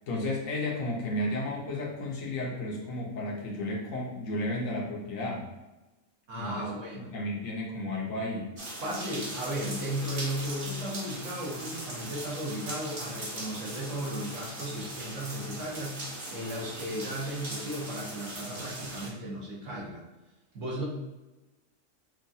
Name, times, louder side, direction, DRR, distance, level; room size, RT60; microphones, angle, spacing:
voice 1, 0.1-5.5 6.3-8.5, left 1 dB, 80° left, -4 dB, 1.3 m, -33 dB
voice 2, 6.3-7.1 8.8-20.0 20.5-20.8, equal, 75° right, -4 dB, 1.4 m, -35 dB
sound 1, 8.6-19.1, right 1 dB, 45° right, 1.0 m, -40 dB
5.7 x 2.4 x 2.7 m, 1.1 s
omnidirectional pair, 1.3 m